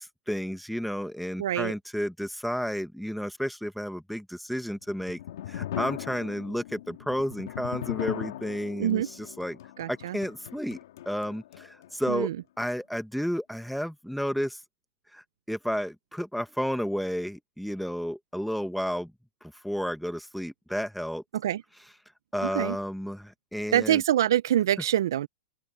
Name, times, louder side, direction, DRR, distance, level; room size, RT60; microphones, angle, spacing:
voice 1, 0.0-5.2 5.5-9.6 9.9-10.8 11.1-12.3 12.6-14.6 15.1-19.1 19.4-21.2 22.3-24.0, equal, ahead, 1.3 m, -32 dB
voice 2, 1.4-1.7 8.8-9.1 9.8-10.2 12.1-12.4 21.3-21.6 22.4-22.8 23.7-25.3, right 11 dB, 65° right, 0.4 m, -25 dB
sound 1, 4.7-11.9, left 12 dB, 60° left, 2.3 m, -38 dB
open air
supercardioid pair, 175°, 2 cm